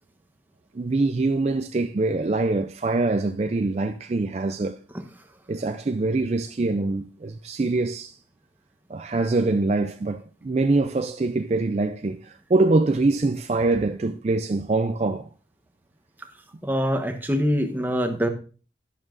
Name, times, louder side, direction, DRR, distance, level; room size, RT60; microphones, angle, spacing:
voice 1, 0.8-4.8 5.5-8.1 8.9-15.3, right 3 dB, 35° right, 0.4 m, -24 dB
voice 2, 4.9-5.3 16.2-16.3 16.6-18.3, equal, 10° right, 1.0 m, -25 dB
11.0 x 11.0 x 2.5 m
head